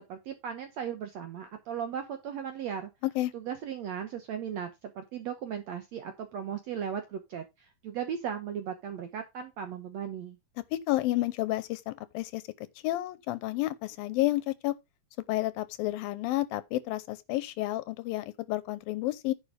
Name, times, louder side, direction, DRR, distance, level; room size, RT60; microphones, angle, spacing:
voice 1, 0.1-2.9 3.3-10.4, right 8 dB, 70° right, 1.7 m, -37 dB
voice 2, 10.7-12.4 12.8-14.8 15.3-19.3, left 17 dB, 80° left, 2.4 m, -30 dB
9.9 x 4.9 x 5.0 m
omnidirectional pair, 4.3 m